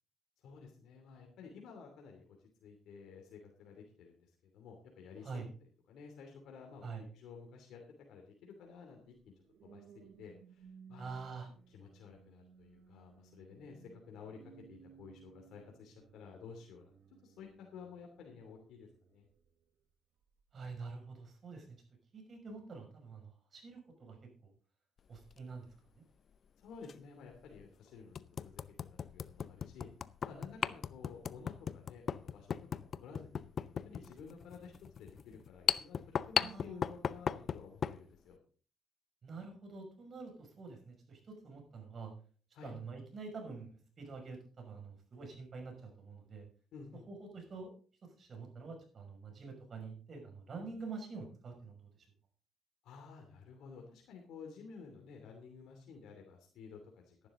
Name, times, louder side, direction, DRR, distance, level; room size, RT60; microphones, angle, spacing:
voice 1, 0.4-2.3 2.6-6.9 7.1-7.8 8.1-9.3 9.6-11.1 11.7-16.9 17.2-19.3 26.6-28.6 28.9-29.9 30.2-33.4 33.7-38.4 42.5-42.7 46.7-47.0 52.8-57.3, left 5 dB, 85° left, 1 dB, 2.8 m, -53 dB
sound 1, 9.1-19.7 20.2-20.5, right 7 dB, 70° right, 1.1 m, -61 dB
voice 2, 11.0-11.5 20.5-21.7 22.1-24.2 24.4-24.5 25.1-25.7 36.4-36.8 39.2-42.1 42.6-46.5 47.1-47.7 48.0-51.9, right 4 dB, 50° right, 3 dB, 5.9 m, -47 dB
sound 2, 25.2-25.4 26.8-26.9 27.5-27.6 28.1-38.0, left 7 dB, 55° left, 0.6 m, -37 dB
13.0 x 11.5 x 3.8 m, 0.41 s
cardioid pair, 90°, 0 cm